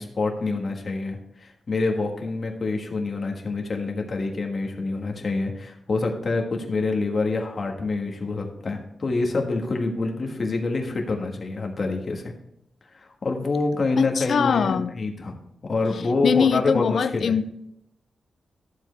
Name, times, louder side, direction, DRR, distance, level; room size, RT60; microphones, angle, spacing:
voice 1, 0.0-12.3 12.9-15.3 15.6-17.3, left 3 dB, 40° left, 2 dB, 1.4 m, -26 dB
voice 2, 14.0-14.9 16.2-17.5, left 6 dB, 65° left, 13 dB, 0.5 m, -22 dB
11.5 x 7.3 x 3.4 m, 0.80 s
wide cardioid pair, 135°, 0 cm